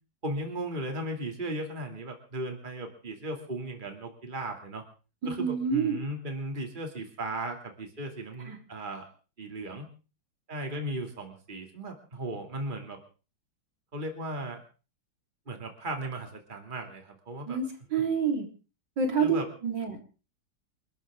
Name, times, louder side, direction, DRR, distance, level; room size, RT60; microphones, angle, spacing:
voice 1, 0.2-4.8 5.2-9.1 9.4-9.9 10.5-13.0 13.9-14.6 15.5-17.6 17.9-18.1 19.2-19.5, right 1 dB, 25° right, 4 dB, 2.7 m, -36 dB
voice 2, 5.2-6.0 8.5-8.6 17.5-17.7 17.9-18.4 19.0-19.4 19.6-20.0, right 6 dB, 75° right, 2 dB, 4.5 m, -27 dB
29.0 x 13.5 x 3.7 m, 0.37 s
omnidirectional pair, 2.0 m